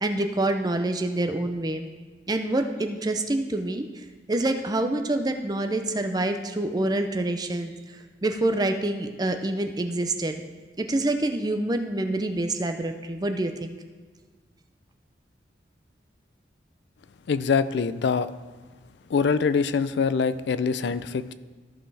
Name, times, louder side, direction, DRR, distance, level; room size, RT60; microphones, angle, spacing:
voice 1, 0.0-1.9 2.3-10.4 10.8-13.7, right 2 dB, 20° right, 6 dB, 0.5 m, -27 dB
voice 2, 17.3-18.3 19.1-21.3, left 5 dB, 70° left, 14 dB, 0.4 m, -24 dB
14.0 x 5.5 x 3.4 m, 1.4 s
head